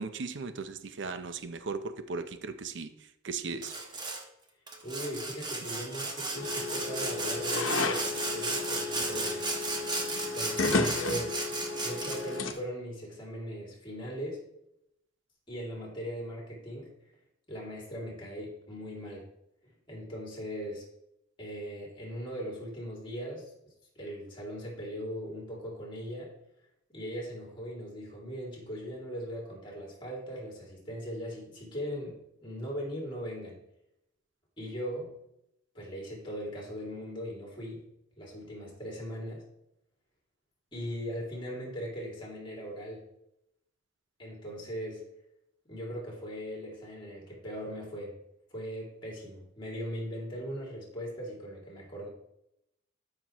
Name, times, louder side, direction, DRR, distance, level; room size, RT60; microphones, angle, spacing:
voice 1, 0.0-2.9 3.2-3.8, right 4 dB, 60° right, 0.6 m, -37 dB
Sawing, 3.6-4.2 4.7-12.4, right 3 dB, 20° right, 1.0 m, -35 dB
voice 2, 4.8-9.4 10.3-11.4 11.8-14.4 15.5-16.9 17.5-19.3 19.6-20.9 21.4-23.5 23.9-26.3 26.9-33.6 34.6-35.1 35.7-37.8 38.2-39.4 40.7-43.0 44.2-45.1 45.6-48.2 48.5-52.1, equal, 25° left, 2.6 m, -39 dB
sound 1, 6.3-12.5, left 3 dB, 80° left, 0.9 m, -33 dB
12.0 x 5.8 x 3.0 m
head